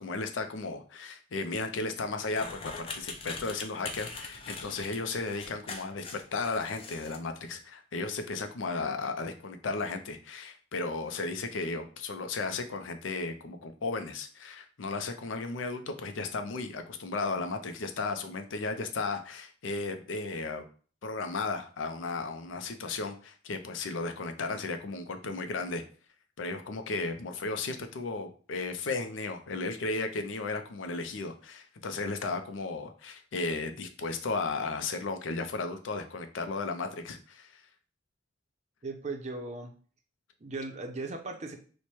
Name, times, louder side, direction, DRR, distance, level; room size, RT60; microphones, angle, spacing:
voice 1, 0.0-20.6 21.0-25.8 26.4-37.6, left 3 dB, 85° left, 7 dB, 0.5 m, -35 dB
sound 1, 2.3-7.2, left 4 dB, 30° left, 0.4 m, -42 dB
voice 2, 38.8-39.7 40.4-41.6, right 3 dB, 35° right, 4 dB, 0.5 m, -37 dB
3.1 x 2.1 x 4.2 m, 0.41 s
head